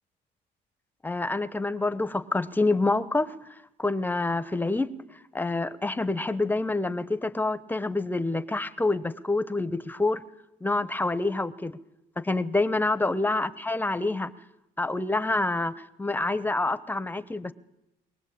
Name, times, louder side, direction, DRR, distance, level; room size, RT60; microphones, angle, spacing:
voice 1, 1.0-3.3 3.8-4.9 5.3-10.2 10.6-11.8 12.2-14.3 14.8-15.7 16.0-17.5, left 2 dB, 10° left, 15 dB, 1.0 m, -27 dB
22.5 x 19.0 x 8.7 m, 0.89 s
cardioid pair, 110°, 17 cm